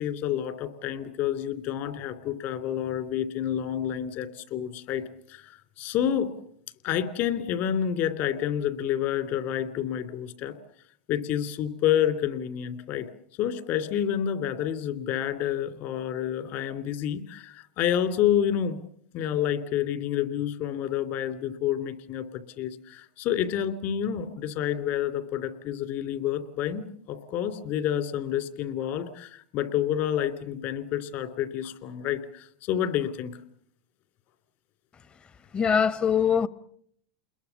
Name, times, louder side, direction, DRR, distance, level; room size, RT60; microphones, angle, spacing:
voice 1, 0.0-5.0 5.3-6.3 6.8-10.5 11.1-13.1 13.4-18.8 19.1-33.4, left 10 dB, 55° left, 2.9 m, -29 dB
voice 2, 35.5-36.5, left 7 dB, 25° left, 1.1 m, -22 dB
29.0 x 21.5 x 7.1 m
supercardioid pair, 115°, 4 cm